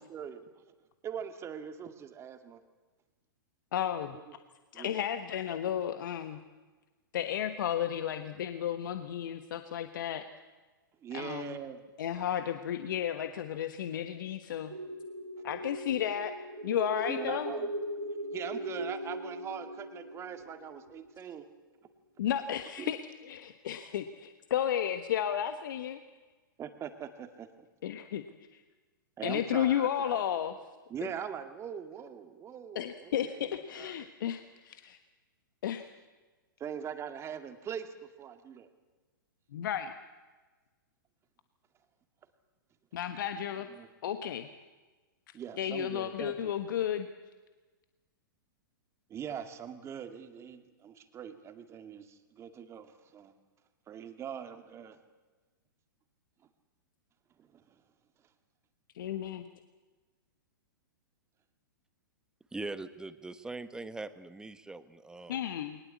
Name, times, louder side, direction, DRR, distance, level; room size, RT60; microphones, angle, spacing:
voice 1, 0.1-0.4 1.0-2.6 4.1-4.2 4.7-5.0 11.0-11.8 17.1-17.7 18.3-21.4 22.8-22.9 26.6-27.7 29.2-30.1 30.9-34.1 36.6-38.7 43.7-43.9 45.3-46.5 49.1-53.3 53.9-55.0 57.4-57.6, right 8 dB, 25° right, 8 dB, 2.0 m, -42 dB
voice 2, 3.7-4.2 4.7-6.4 7.1-10.3 11.1-11.6 12.0-14.7 15.4-16.3 16.6-17.5 22.2-23.0 23.2-26.0 27.8-28.2 29.2-30.6 31.0-31.1 32.7-35.0 35.6-35.8 39.5-39.9 42.9-43.7 44.0-44.5 45.6-47.1 58.9-59.5 65.3-65.8, left 10 dB, 65° left, 9 dB, 1.3 m, -33 dB
sound 1, 14.7-21.2, right 1 dB, 90° right, 1.8 m, -39 dB
voice 3, 62.5-65.4, right 2 dB, 5° right, 12 dB, 1.1 m, -41 dB
21.0 x 19.5 x 8.5 m, 1.3 s
hypercardioid pair, 120°, 12 cm